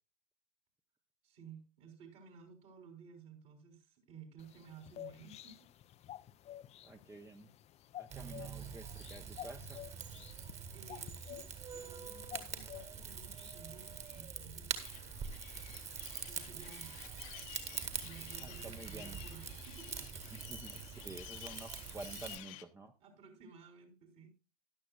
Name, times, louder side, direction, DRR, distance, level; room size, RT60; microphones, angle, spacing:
voice 1, 1.2-5.6 10.7-14.9 16.2-17.0 17.9-20.0 23.0-24.3, right 6 dB, 55° right, 3 dB, 3.7 m, -55 dB
sound 1, 4.4-14.2, left 12 dB, 35° left, 0.6 m, -52 dB
voice 2, 6.8-7.5 8.0-9.8 18.4-19.2 20.3-22.9, right 2 dB, 15° right, 5 dB, 0.8 m, -50 dB
Rain / Fire, 8.1-22.4, right 6 dB, 35° right, 2.0 m, -45 dB
sound 2, 14.8-22.6, left 14 dB, 55° left, 1.1 m, -53 dB
14.0 x 11.0 x 2.4 m, 0.29 s
figure-of-eight pair, 75°, 19 cm